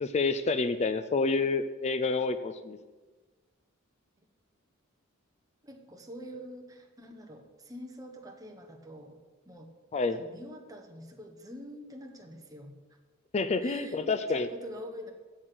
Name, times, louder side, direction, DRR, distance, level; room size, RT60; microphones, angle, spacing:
voice 1, 0.0-2.8 9.9-10.3 13.3-14.5, left 3 dB, 30° left, 11 dB, 0.4 m, -28 dB
voice 2, 5.6-9.2 9.5-9.7 10.1-12.7 13.6-15.1, equal, 20° right, 2 dB, 1.3 m, -45 dB
8.0 x 7.5 x 7.9 m, 1.3 s
head